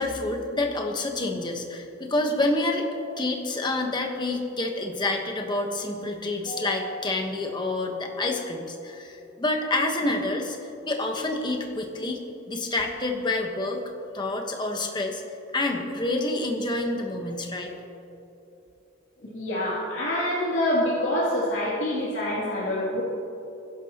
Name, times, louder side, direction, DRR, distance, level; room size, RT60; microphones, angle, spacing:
voice 1, 0.0-2.9 3.2-12.2 12.5-13.8 14.1-15.2 15.5-17.7, left 2 dB, 20° left, 2 dB, 1.2 m, -28 dB
voice 2, 6.5-6.9 12.0-12.1 19.2-23.0, left 1 dB, 65° left, -9 dB, 2.8 m, -26 dB
22.5 x 11.0 x 3.0 m, 2.9 s
head